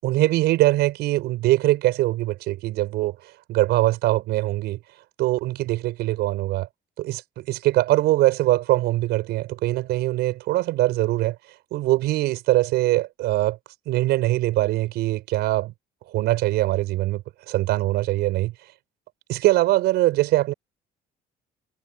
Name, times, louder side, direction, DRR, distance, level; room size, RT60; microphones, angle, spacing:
voice 1, 0.0-3.2 3.5-4.8 5.2-6.7 7.0-11.4 11.7-13.6 13.9-15.7 16.1-18.5 19.3-20.5, right 17 dB, 85° right, 5.7 m, -22 dB
cardioid pair, 110°, 17 cm